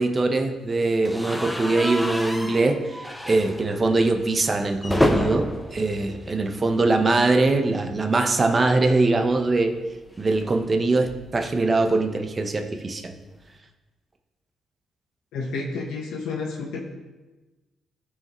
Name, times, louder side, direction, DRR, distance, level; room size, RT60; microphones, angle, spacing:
voice 1, 0.0-9.8 10.2-13.1, right 2 dB, 30° right, 5 dB, 0.9 m, -22 dB
sound 1, 1.0-7.1 7.4-7.6 7.8-7.9 9.2-11.5, left 1 dB, 5° left, 0.7 m, -30 dB
voice 2, 15.3-16.8, left 3 dB, 85° left, -1 dB, 1.2 m, -30 dB
14.5 x 4.8 x 3.1 m, 1.2 s
cardioid pair, 90°, 0 cm